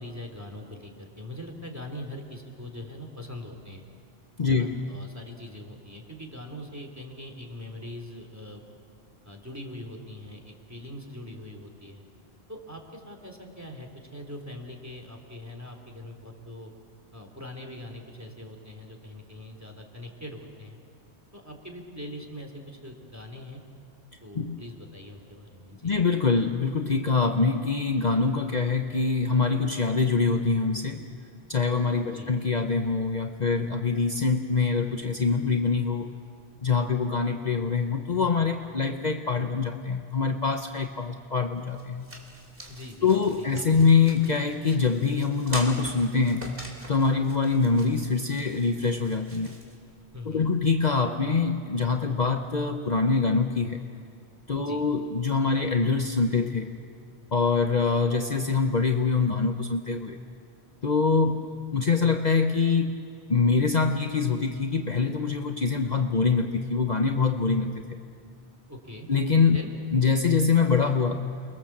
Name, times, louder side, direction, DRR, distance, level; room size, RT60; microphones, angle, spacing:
voice 1, 0.0-3.8 4.5-8.7 9.2-12.0 12.5-16.7 17.1-20.8 21.3-23.6 24.2-26.0 32.1-32.3 42.7-43.6 50.1-50.5 54.6-54.8 68.7-69.1 69.5-69.7, left 1 dB, 15° right, 2 dB, 3.0 m, -42 dB
voice 2, 4.4-4.8 24.3-24.6 25.8-31.0 31.5-36.1 36.6-42.1 43.0-46.5 46.9-49.5 50.3-53.9 54.5-56.7 57.3-60.2 60.8-61.5 61.7-63.0 63.3-67.9 69.1-69.6 69.9-71.2, left 4 dB, 45° left, 5 dB, 1.0 m, -24 dB
sound 1, 41.4-50.4, right 1 dB, 60° right, 3.5 m, -45 dB
29.5 x 22.0 x 7.3 m, 2.4 s
omnidirectional pair, 1.1 m